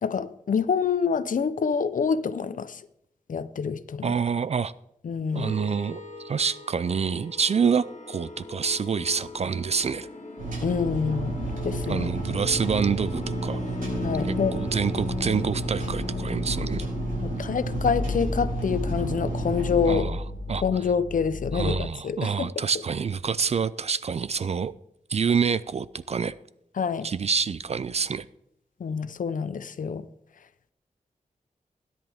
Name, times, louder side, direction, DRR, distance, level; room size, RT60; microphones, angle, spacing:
voice 1, 0.0-2.8 3.3-4.1 5.0-5.5 10.6-11.4 11.6-12.1 14.0-14.5 17.2-20.1 20.6-22.5 26.8-27.1 28.8-30.0, left 6 dB, 75° left, 0.7 m, -26 dB
voice 2, 4.0-4.7 5.3-10.1 11.9-13.6 14.2-16.9 19.9-20.2 20.5-20.9 21.5-24.7 25.1-26.3 27.0-28.3, right 6 dB, 50° right, 0.4 m, -27 dB
sound 1, 5.3-21.9, left 2 dB, 55° left, 1.6 m, -36 dB
sound 2, 10.4-19.9, right 2 dB, 85° right, 5.4 m, -32 dB
16.5 x 10.5 x 3.5 m
wide cardioid pair, 105°, 14 cm